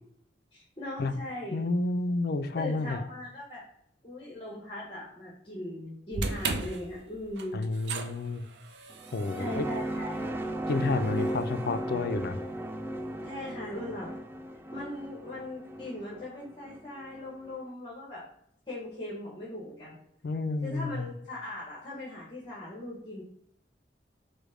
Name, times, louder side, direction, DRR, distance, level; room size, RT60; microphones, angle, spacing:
voice 1, 0.5-1.6 2.6-3.6 4.0-7.6 9.3-10.2 13.2-14.1 14.7-18.2 18.7-19.9 20.6-23.2, left 1 dB, 30° left, -4 dB, 1.2 m, -39 dB
voice 2, 1.5-3.0 7.5-8.5 9.1-9.7 10.7-12.4 20.2-21.1, left 3 dB, 60° left, 9 dB, 0.4 m, -30 dB
sound 1, 6.1-12.4, right 3 dB, 85° right, 0.5 m, -38 dB
sound 2, 8.9-17.6, right 1 dB, 15° right, 0.3 m, -36 dB
5.0 x 2.2 x 4.8 m, 0.71 s
head